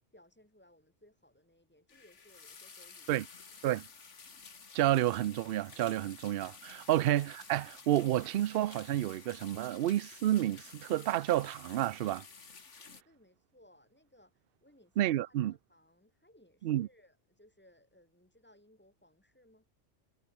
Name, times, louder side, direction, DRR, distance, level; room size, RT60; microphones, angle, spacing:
voice 1, 0.1-3.3 3.6-3.8 12.8-14.9 15.2-19.7, left 1 dB, 10° left, 6.0 m, -64 dB
sound 1, 1.9-13.0, left 5 dB, 90° left, 2.2 m, -53 dB
voice 2, 4.7-12.2 15.0-15.6 16.6-16.9, right 13 dB, 60° right, 0.7 m, -30 dB
omnidirectional pair, 1.2 m